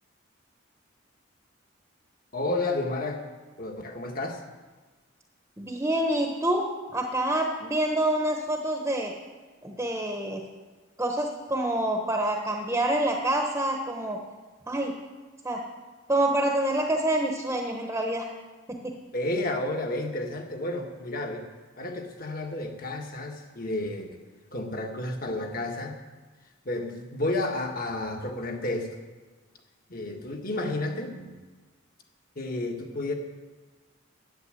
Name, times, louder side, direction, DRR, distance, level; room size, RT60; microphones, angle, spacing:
voice 1, 2.3-3.2 3.6-4.4 19.1-21.4 21.8-24.1 24.5-26.0 26.6-28.9 29.9-31.3 32.3-33.1, left 2 dB, 45° left, 3 dB, 1.6 m, -31 dB
voice 2, 5.6-9.1 9.6-10.4 11.0-14.2 14.7-14.9 15.4-15.6 16.1-18.2 18.7-18.9, right 1 dB, 15° right, 2 dB, 1.1 m, -27 dB
11.0 x 9.1 x 7.8 m, 1.3 s
head